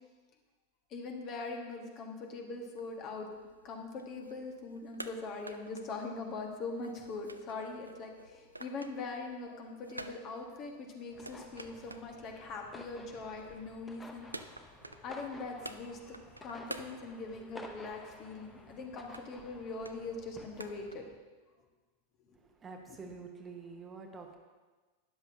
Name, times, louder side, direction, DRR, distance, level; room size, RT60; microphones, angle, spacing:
voice 1, 0.9-3.3 3.6-14.3 15.0-21.0 22.9-23.2, left 3 dB, 35° left, 3 dB, 1.4 m, -42 dB
sound 1, 2.7-20.9, right 2 dB, 85° right, 0.4 m, -52 dB
sound 2, 11.1-21.2, left 2 dB, 15° left, 0.8 m, -53 dB
voice 2, 22.4-24.4, right 4 dB, 20° right, 3 dB, 1.1 m, -47 dB
12.5 x 10.0 x 2.8 m, 1.3 s
figure-of-eight pair, 90°, 0 cm